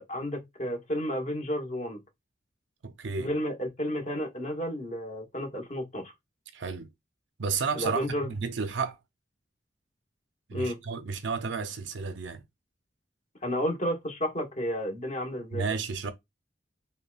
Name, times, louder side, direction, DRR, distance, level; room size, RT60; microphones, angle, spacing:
voice 1, 0.0-2.0 3.2-6.1 7.8-8.3 10.5-10.8 13.4-15.6, equal, 40° left, 1.2 m, -32 dB
voice 2, 2.8-3.3 6.5-6.9 7.4-9.0 10.5-12.4 15.5-16.1, right 5 dB, 85° right, 0.6 m, -32 dB
5.3 x 2.2 x 2.4 m
head